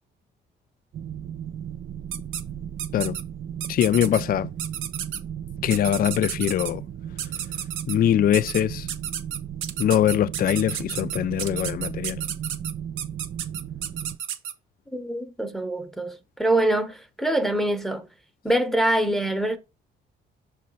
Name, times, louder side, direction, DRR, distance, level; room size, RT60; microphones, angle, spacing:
sound 1, 0.9-14.2, right 9 dB, 45° right, 0.4 m, -36 dB
sound 2, 2.1-2.4 2.8-3.2 3.6-4.2 4.6-5.2 5.7-6.7 7.2-8.0 8.3-8.6 8.9-14.5, right 9 dB, 85° right, 0.7 m, -31 dB
voice 1, 3.7-4.5 5.6-6.8 7.9-8.9 9.8-12.2, left 10 dB, 50° left, 0.4 m, -22 dB
voice 2, 14.9-18.1 18.4-19.6, right 1 dB, ahead, 0.9 m, -24 dB
6.5 x 3.2 x 5.3 m
cardioid pair, 90°, 20 cm